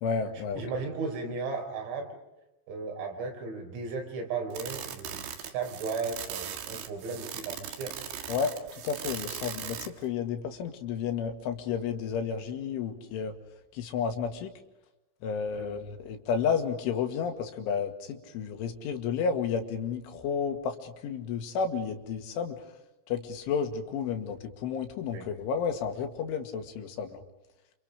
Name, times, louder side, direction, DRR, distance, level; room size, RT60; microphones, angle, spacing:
voice 1, 0.0-0.6 8.3-13.3 13.7-14.5 15.2-22.6 23.1-27.2, left 6 dB, 75° left, 5 dB, 4.4 m, -31 dB
voice 2, 0.6-2.2 2.7-8.0 15.6-15.8 25.1-25.3, right 4 dB, 80° right, 3 dB, 7.4 m, -35 dB
sound 1, 4.5-10.0, right 9 dB, 65° right, 3.9 m, -39 dB
29.0 x 28.5 x 5.1 m, 0.98 s
omnidirectional pair, 5.8 m